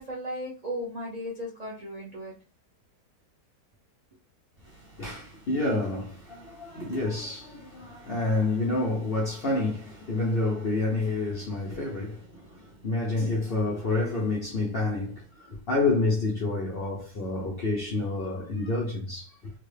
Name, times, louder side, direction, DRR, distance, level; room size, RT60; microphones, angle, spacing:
voice 1, 0.0-2.3, equal, 80° right, 0.3 m, -36 dB
voice 2, 4.7-19.5, left 2 dB, 60° left, 0.5 m, -29 dB
3.7 x 2.2 x 3.2 m
omnidirectional pair, 1.9 m